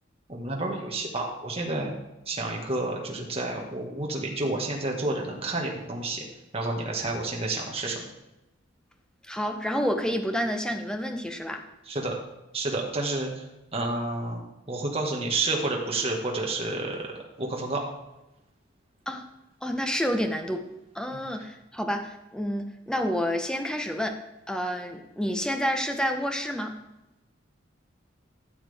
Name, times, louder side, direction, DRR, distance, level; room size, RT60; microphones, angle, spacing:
voice 1, 0.3-1.9 2.3-6.2 6.5-8.0 11.9-12.2 12.5-13.4 13.7-17.8 21.1-21.2, right 2 dB, 30° right, 0 dB, 1.6 m, -30 dB
voice 2, 9.2-11.6 19.1-19.2 19.6-20.6 20.9-24.2 24.5-26.8, equal, 5° left, 5 dB, 0.9 m, -29 dB
13.5 x 7.4 x 3.5 m, 0.95 s
head